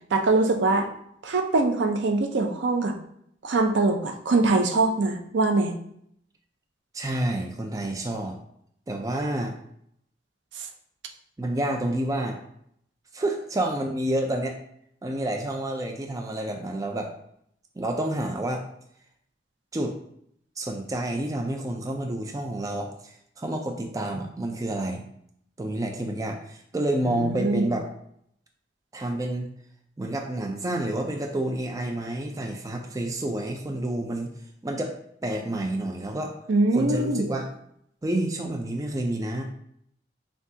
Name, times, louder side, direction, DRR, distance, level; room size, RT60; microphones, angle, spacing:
voice 1, 0.1-0.9 1.2-2.9 3.4-5.7 10.6-10.7 27.0-27.7 36.5-37.3, right 3 dB, 85° right, 5 dB, 0.5 m, -23 dB
voice 2, 6.9-8.4 8.9-9.6 11.4-12.4 13.1-14.6 15.0-17.1 17.8-18.6 19.7-19.9 20.6-25.0 25.6-27.9 28.9-29.5 30.0-34.3 34.6-35.0 35.2-36.4 36.7-37.5 38.0-39.4, right 1 dB, 20° right, 3 dB, 0.4 m, -29 dB
5.9 x 2.3 x 2.7 m, 0.70 s
head